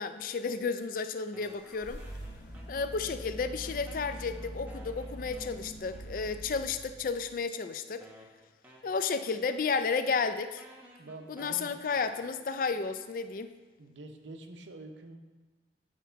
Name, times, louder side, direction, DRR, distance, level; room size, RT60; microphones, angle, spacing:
voice 1, 0.0-2.0 2.7-8.1 8.8-10.6 11.3-13.5, left 5 dB, 50° left, 10 dB, 0.3 m, -32 dB
sound 1, 1.3-3.2 3.4-6.7 7.4-7.5 8.0-13.4, right 1 dB, 10° right, 0.8 m, -57 dB
sound 2, 1.4-7.3, equal, 90° left, 1.8 m, -44 dB
voice 2, 11.0-11.7 13.8-15.2, right 2 dB, 85° right, 5 dB, 0.8 m, -46 dB
10.0 x 3.5 x 4.6 m, 1.3 s
head